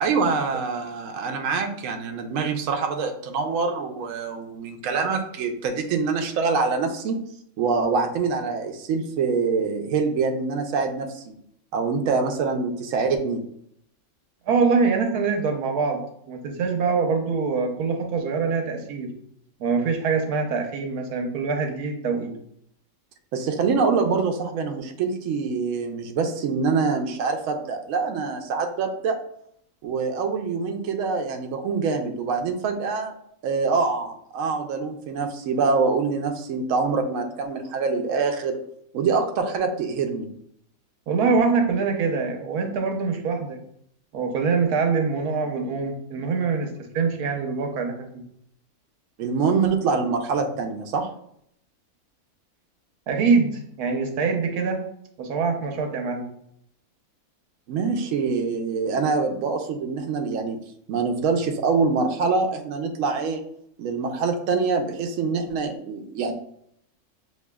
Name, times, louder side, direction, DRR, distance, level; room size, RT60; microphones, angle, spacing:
voice 1, 0.0-7.2 7.6-11.3 11.7-13.4 23.3-29.2 29.8-33.1 33.4-38.6 38.9-40.3 49.2-51.1 57.7-60.6 60.9-63.4 63.8-66.3, right 4 dB, 70° right, 4 dB, 0.9 m, -25 dB
voice 2, 14.5-16.0 16.3-19.1 19.6-22.3 41.1-43.6 44.1-48.2 53.1-54.8 55.2-56.3, right 5 dB, 90° right, 4 dB, 1.3 m, -24 dB
6.5 x 2.7 x 2.2 m, 0.70 s
omnidirectional pair, 1.6 m